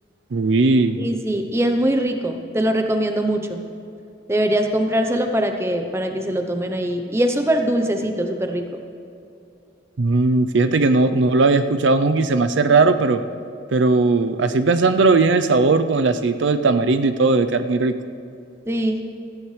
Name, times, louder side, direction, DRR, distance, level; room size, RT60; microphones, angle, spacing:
voice 1, 0.3-1.1 10.0-13.2 13.7-17.9, right 3 dB, 75° right, 9 dB, 0.5 m, -18 dB
voice 2, 1.0-3.6 4.3-8.7 18.7-19.0, right 1 dB, 15° right, 5 dB, 0.7 m, -22 dB
17.0 x 14.5 x 3.3 m, 2.6 s
head